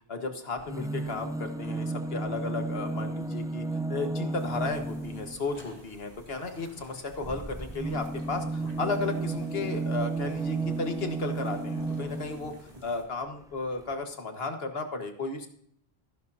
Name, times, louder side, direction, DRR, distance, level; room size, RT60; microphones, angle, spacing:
voice 1, 0.1-3.6 3.9-12.5 12.8-15.5, left 3 dB, 75° left, 5 dB, 1.7 m, -34 dB
sound 1, 0.6-5.4 7.1-12.6 13.5-13.6 13.8-13.9, right 3 dB, 5° right, 0.3 m, -33 dB
sound 2, 4.3-13.0, right 1 dB, 40° right, 2.5 m, -51 dB
14.0 x 12.5 x 2.7 m, 0.66 s
omnidirectional pair, 1.0 m